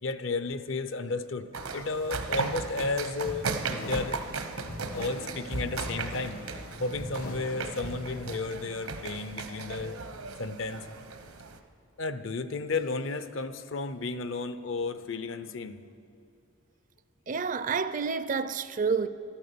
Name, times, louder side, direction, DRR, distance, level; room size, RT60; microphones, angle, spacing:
voice 1, 0.0-4.2 4.9-6.4 6.8-10.0 10.4-10.9 12.0-16.0, left 3 dB, 60° left, 0.7 m, -33 dB
sound 1, 1.5-11.6, right 4 dB, 85° right, 1.1 m, -36 dB
sound 2, 3.2-8.3, equal, 85° left, 2.4 m, -42 dB
voice 2, 17.3-19.1, right 5 dB, 35° right, 0.4 m, -29 dB
13.5 x 13.0 x 6.9 m
head